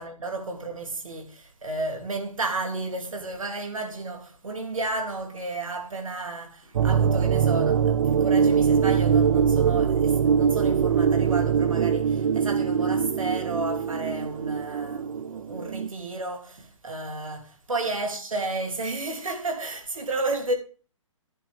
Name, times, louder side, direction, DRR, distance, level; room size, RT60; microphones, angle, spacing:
voice 1, 0.0-20.6, right 2 dB, 80° right, 2.9 m, -32 dB
sound 1, 6.7-15.9, right 7 dB, 55° right, 0.6 m, -22 dB
11.0 x 10.5 x 3.5 m
figure-of-eight pair, 130°, 17 cm